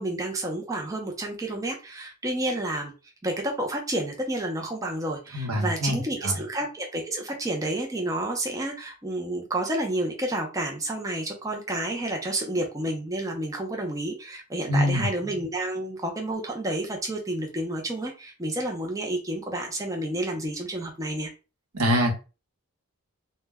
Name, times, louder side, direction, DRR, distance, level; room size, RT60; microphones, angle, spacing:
voice 1, 0.0-2.9 3.2-21.3, right 1 dB, 15° right, 0.4 m, -30 dB
voice 2, 5.3-6.4 14.7-15.1 21.7-22.1, equal, 90° right, 0.8 m, -24 dB
2.1 x 2.1 x 3.3 m
head